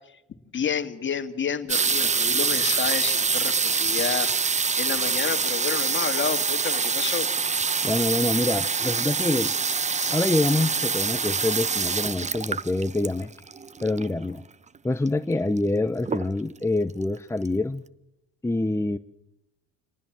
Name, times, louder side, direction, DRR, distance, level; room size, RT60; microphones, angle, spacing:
voice 1, 0.5-7.3 10.0-10.1, left 7 dB, 40° left, 9 dB, 2.3 m, -30 dB
sound 1, 1.7-14.2 15.1-15.2 15.3-15.7 16.1-16.6 17.2-17.3 17.5-17.6, right 5 dB, 25° right, 1.0 m, -25 dB
voice 2, 7.8-9.5 10.1-13.3 13.8-14.4 14.8-17.8 18.4-19.0, left 2 dB, 10° left, 9 dB, 0.8 m, -26 dB
26.5 x 19.0 x 7.5 m, 0.88 s
supercardioid pair, 85°, 30 cm